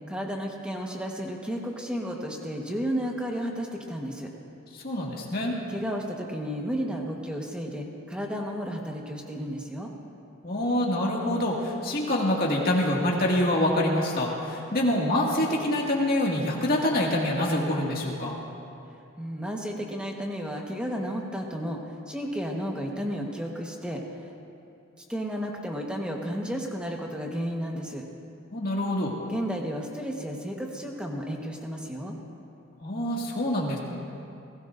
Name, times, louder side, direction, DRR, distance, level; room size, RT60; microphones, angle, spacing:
voice 1, 0.1-4.3 5.7-9.9 19.2-24.0 25.1-28.0 29.3-32.2, equal, 5° right, 0 dB, 1.3 m, -32 dB
voice 2, 4.8-5.6 10.4-18.4 28.5-29.1 32.8-33.8, left 1 dB, 45° left, -2 dB, 2.1 m, -26 dB
26.0 x 17.0 x 2.6 m, 2.7 s
head